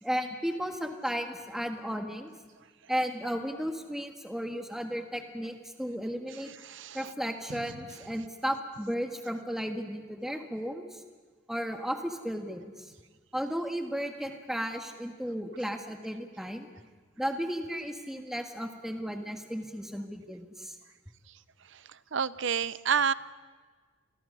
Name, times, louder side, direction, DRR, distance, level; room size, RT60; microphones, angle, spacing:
voice 1, 0.0-2.3 2.9-6.5 6.9-11.0 11.5-12.9 13.3-16.7 17.2-20.8, equal, ahead, 4 dB, 1.5 m, -34 dB
voice 2, 6.7-7.0 22.1-23.1, right 7 dB, 60° right, 17 dB, 0.6 m, -28 dB
27.5 x 21.0 x 5.5 m, 1.5 s
head